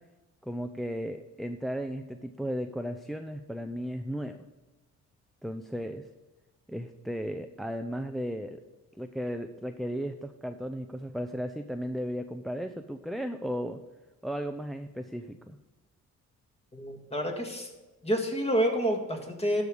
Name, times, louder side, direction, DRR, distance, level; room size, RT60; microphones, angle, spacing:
voice 1, 0.4-4.4 5.4-6.1 6.7-8.6 9.0-13.8 14.2-15.6, equal, ahead, 7 dB, 0.4 m, -35 dB
voice 2, 16.7-17.7 18.0-19.6, equal, 20° left, 2 dB, 1.9 m, -28 dB
12.0 x 4.9 x 5.2 m, 1.2 s
cardioid pair, 90°, 30 cm